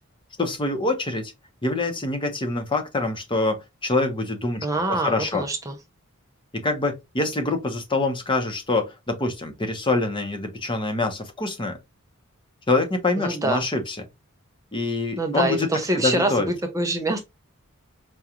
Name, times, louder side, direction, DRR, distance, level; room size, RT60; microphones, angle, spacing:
voice 1, 0.4-1.3 1.6-5.4 6.5-11.8 12.7-14.0 14.7-16.5, left 2 dB, 20° left, 0.8 m, -25 dB
voice 2, 4.6-5.8 13.2-13.6 15.2-17.2, right 2 dB, 15° right, 0.5 m, -25 dB
4.9 x 2.4 x 2.8 m
head